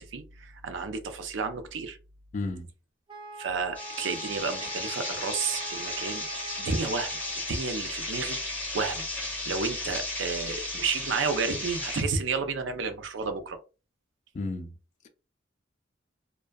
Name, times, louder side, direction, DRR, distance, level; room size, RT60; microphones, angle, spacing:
voice 1, 0.0-2.0 3.4-6.3 6.6-7.2 7.5-8.4 8.7-13.6, right 4 dB, 85° right, 0.5 m, -31 dB
voice 2, 2.3-2.7 14.3-14.7, left 2 dB, 40° left, 0.4 m, -32 dB
Wind instrument woodwind instrument, 3.1-7.6, right 3 dB, 25° right, 0.4 m, -44 dB
sound 1, 3.7-12.0, left 2 dB, 10° left, 0.7 m, -34 dB
2.5 x 2.2 x 2.3 m
head